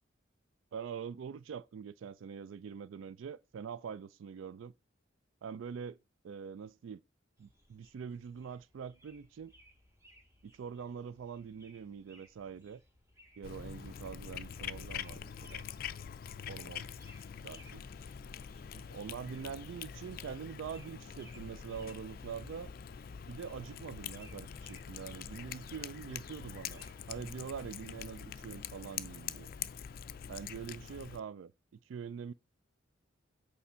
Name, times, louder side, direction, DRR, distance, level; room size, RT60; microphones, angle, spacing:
voice 1, 0.7-4.7 5.4-6.0 6.2-7.0 7.4-9.5 10.4-12.8 13.4-15.6 16.5-16.9 17.4-17.8 18.7-22.7 23.3-29.5 30.3-32.3, right 7 dB, 75° right, 0.3 m, -44 dB
sound 1, 7.4-27.2, equal, 15° right, 1.1 m, -64 dB
Cat, 13.4-31.2, left 8 dB, 50° left, 0.4 m, -45 dB
8.5 x 3.3 x 5.5 m
head